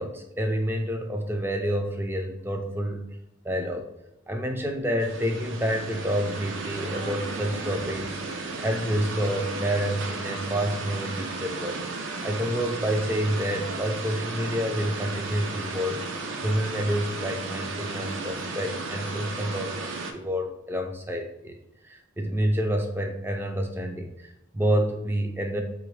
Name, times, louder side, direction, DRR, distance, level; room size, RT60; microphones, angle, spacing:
voice 1, 0.0-3.2 3.4-3.9 4.3-11.8 12.2-16.0 16.4-21.6 21.8-25.6, equal, 10° right, 4 dB, 0.3 m, -28 dB
sound 1, 5.0-20.1, right 3 dB, 70° right, 0.5 m, -34 dB
3.7 x 2.9 x 3.1 m, 0.88 s
head